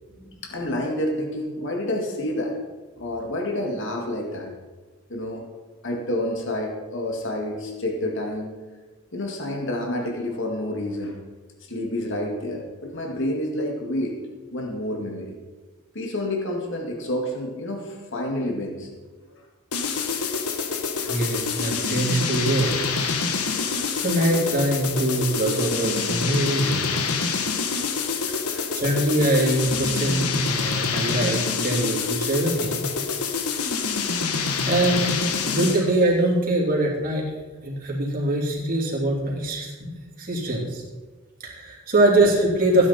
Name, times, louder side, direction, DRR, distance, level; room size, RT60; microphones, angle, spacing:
voice 1, 0.4-2.6 3.0-4.5 5.1-5.4 5.8-8.5 9.1-11.2 11.7-14.2 14.5-15.4 15.9-18.9 19.4-19.5 21.0-21.5 28.5-28.7 42.1-42.2, left 1 dB, 55° left, 1 dB, 2.2 m, -29 dB
sound 1, 19.7-35.9, left 5 dB, 80° left, 1.3 m, -26 dB
voice 2, 21.1-22.8 23.5-26.9 28.4-32.9 34.7-37.3 37.6-39.9 40.2-40.8 41.4-42.9, right 1 dB, 40° right, -2 dB, 3.2 m, -23 dB
16.0 x 10.0 x 4.3 m, 1.3 s
head